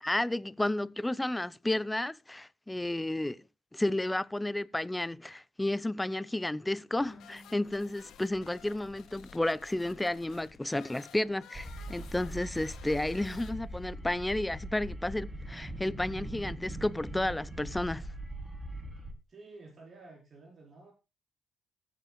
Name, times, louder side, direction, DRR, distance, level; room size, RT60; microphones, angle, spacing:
voice 1, 0.0-3.4 3.7-18.1, left 1 dB, 10° left, 0.6 m, -32 dB
sound 1, 6.9-13.9, left 8 dB, 80° left, 2.2 m, -54 dB
sound 2, 11.5-19.1, right 1 dB, 10° right, 3.5 m, -41 dB
voice 2, 19.3-20.9, right 3 dB, 45° right, 4.7 m, -51 dB
15.0 x 9.1 x 2.3 m
cardioid pair, 90°, 0 cm